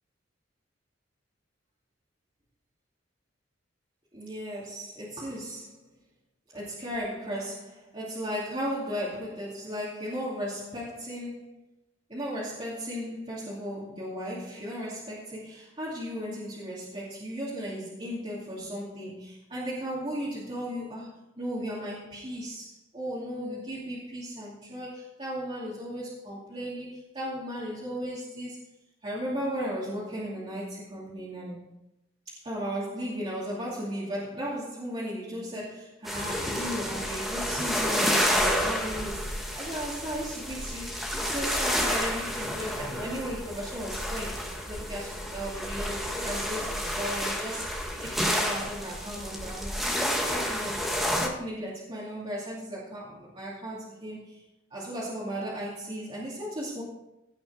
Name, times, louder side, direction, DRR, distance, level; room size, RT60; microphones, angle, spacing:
voice 1, 4.1-5.9 6.5-11.6 12.1-28.6 29.0-31.7 32.4-47.7 48.0-50.8 51.2-54.4 54.7-56.8, equal, 30° right, -8 dB, 2.6 m, -36 dB
sound 1, 36.0-51.3, equal, ahead, 1.5 m, -30 dB
17.0 x 6.0 x 5.0 m, 0.87 s
head